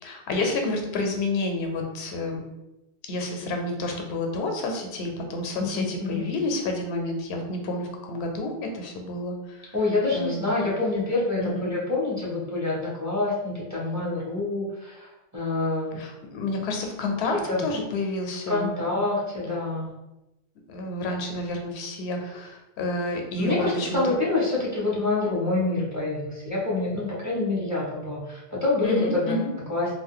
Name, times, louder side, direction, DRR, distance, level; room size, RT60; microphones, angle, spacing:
voice 1, 0.0-2.4 3.0-9.7 10.1-10.4 11.4-11.7 16.0-18.7 20.7-24.0 28.8-29.5, left 2 dB, 85° left, 3 dB, 0.8 m, -29 dB
voice 2, 5.6-6.3 9.7-16.0 17.3-17.6 18.5-19.9 23.4-29.4 29.7-29.9, left 2 dB, 20° right, -8 dB, 0.8 m, -27 dB
2.4 x 2.2 x 3.6 m, 0.96 s
omnidirectional pair, 1.1 m